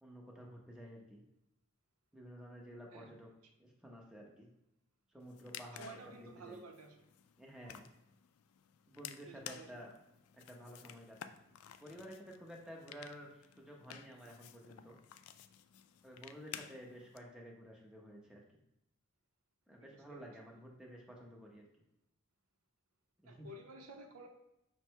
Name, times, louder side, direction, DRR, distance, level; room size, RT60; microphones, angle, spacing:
voice 1, 0.0-1.2 2.1-3.3 3.6-4.5 5.1-6.2 6.4-6.6 7.4-7.9 8.9-9.9 10.3-11.3 11.8-15.0 16.0-18.6 19.7-21.6 23.2-23.5, equal, 5° right, -1 dB, 0.6 m, -52 dB
sound 1, 5.2-17.2, left 10 dB, 85° left, 0.3 m, -54 dB
voice 2, 5.8-6.9 9.3-9.7 19.8-20.2 23.2-24.3, right 2 dB, 85° right, 4 dB, 0.7 m, -52 dB
5.5 x 2.2 x 4.5 m, 0.85 s
head